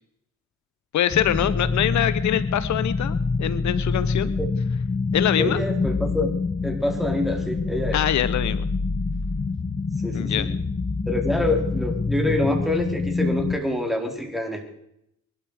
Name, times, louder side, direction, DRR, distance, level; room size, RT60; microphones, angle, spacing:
voice 1, 0.9-4.3 5.1-5.6 7.9-8.7 10.1-10.5, left 11 dB, 70° left, 15 dB, 0.9 m, -24 dB
sound 1, 1.1-13.6, left 4 dB, 25° left, 1.5 m, -26 dB
voice 2, 5.4-6.3 6.6-8.0 10.0-10.5 11.1-14.7, left 1 dB, ahead, 2 dB, 4.3 m, -26 dB
23.0 x 12.5 x 5.0 m, 0.75 s
cardioid pair, 90°, 30 cm